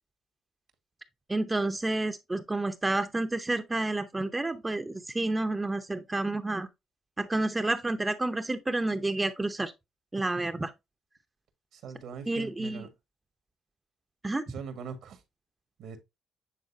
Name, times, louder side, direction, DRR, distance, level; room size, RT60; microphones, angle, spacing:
voice 1, 1.3-6.7 7.2-9.7 10.1-10.7 12.3-12.8 14.2-14.4, right 2 dB, 15° right, 0.7 m, -30 dB
voice 2, 11.7-12.9 14.5-15.2 15.8-16.0, right 6 dB, 80° right, 1.8 m, -41 dB
9.4 x 3.9 x 2.7 m
cardioid pair, 90°, 0 cm